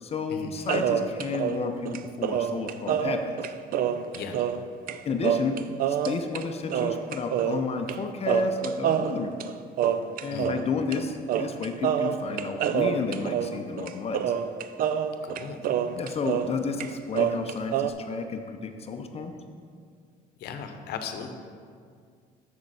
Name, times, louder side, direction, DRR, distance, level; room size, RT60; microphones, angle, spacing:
voice 1, 0.0-3.5 5.0-5.6 5.9-9.5 10.2-14.3 15.9-19.3, left 4 dB, 35° left, 6 dB, 0.6 m, -31 dB
sound 1, 0.7-4.6 4.9-5.0 5.2-6.4 6.7-8.0 8.3-10.6 10.9-11.0 11.3-16.6 16.8-17.9, right 9 dB, 55° right, 0.4 m, -27 dB
voice 2, 4.1-4.5 10.3-10.5 15.2-15.6 20.4-21.3, left 6 dB, 75° left, 6 dB, 0.8 m, -37 dB
6.9 x 6.4 x 4.8 m, 2.1 s
cardioid pair, 110°, 17 cm